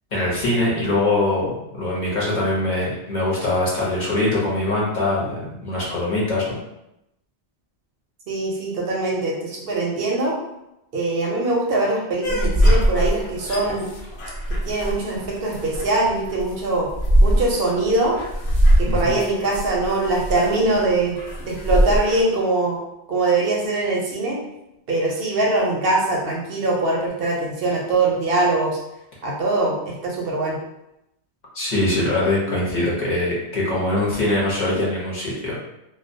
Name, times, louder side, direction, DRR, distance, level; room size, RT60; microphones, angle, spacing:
voice 1, 0.1-6.5 18.9-19.2 31.5-35.6, left 2 dB, 45° left, -6 dB, 0.8 m, -22 dB
voice 2, 8.3-10.3 10.9-13.9 14.6-16.9 17.2-18.2 18.8-22.8 23.1-24.4 24.9-28.8 29.2-30.6, right 2 dB, 65° right, -3 dB, 0.7 m, -22 dB
sound 1, 12.2-22.2, equal, 75° left, 0.8 m, -21 dB
2.2 x 2.2 x 2.5 m, 0.88 s
omnidirectional pair, 1.1 m